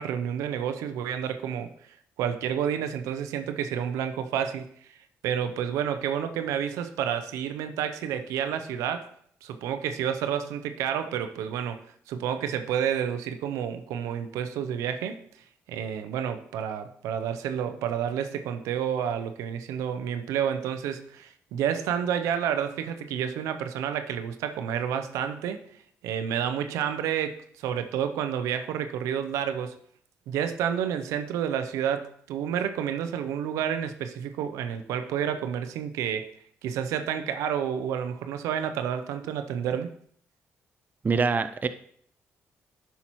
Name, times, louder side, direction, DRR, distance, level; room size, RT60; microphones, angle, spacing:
voice 1, 0.0-1.7 2.2-4.6 5.2-9.1 9.4-15.2 15.7-25.6 26.0-29.8 30.3-36.3 36.6-39.9, right 9 dB, 90° right, 9 dB, 0.5 m, -30 dB
voice 2, 41.0-41.7, right 4 dB, 35° right, 11 dB, 0.5 m, -24 dB
9.7 x 5.8 x 3.0 m, 0.62 s
supercardioid pair, 60°, 5 cm